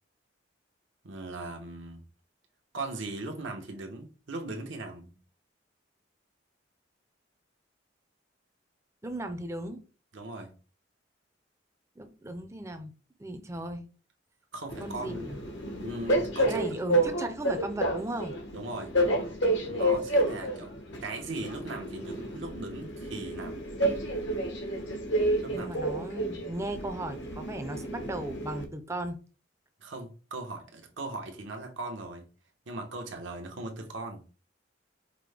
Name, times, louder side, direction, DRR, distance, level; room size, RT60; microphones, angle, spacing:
voice 1, 1.0-2.0 2.7-5.2 10.1-10.5 14.5-15.4 15.8-16.7 18.5-19.0 19.6-20.7 21.0-23.6 25.4-25.8 29.8-32.3 32.7-34.2, right 2 dB, 80° right, 1.0 m, -39 dB
voice 2, 9.0-9.8 12.0-12.9 13.2-13.8 14.8-15.4 16.5-18.3 25.5-29.2, right 1 dB, 15° right, 0.5 m, -36 dB
Train, 14.7-28.6, right 1 dB, 75° left, 1.0 m, -30 dB
5.1 x 2.1 x 3.3 m
head